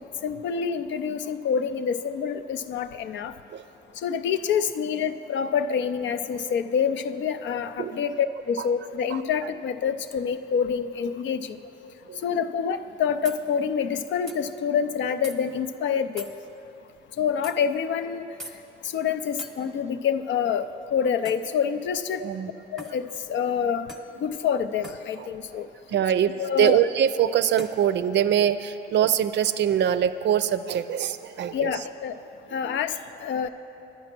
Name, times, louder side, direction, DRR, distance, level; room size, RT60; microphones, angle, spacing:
voice 1, 0.0-3.3 4.0-11.6 12.2-16.3 17.2-18.3 18.8-20.7 20.9-22.2 22.7-23.9 24.2-25.7 26.4-26.8 31.5-32.2 32.5-33.5, left 7 dB, 70° left, 11 dB, 0.5 m, -27 dB
voice 2, 9.1-9.5 12.1-12.2 22.2-22.5 25.2-25.6 25.9-31.8 32.6-32.8, right 9 dB, 65° right, 12 dB, 0.5 m, -24 dB
sound 1, 12.8-12.9 13.2-13.4 14.3-14.4 15.2-15.4 16.2-16.4 17.4-17.6 18.4-18.6 19.4-19.6 21.2-21.5 22.8-23.0 23.9-24.1 24.8-25.0 26.6-26.8 27.6-27.8, equal, ahead, 0.9 m, -41 dB
9.5 x 9.5 x 6.0 m, 3.0 s
cardioid pair, 90°, 20 cm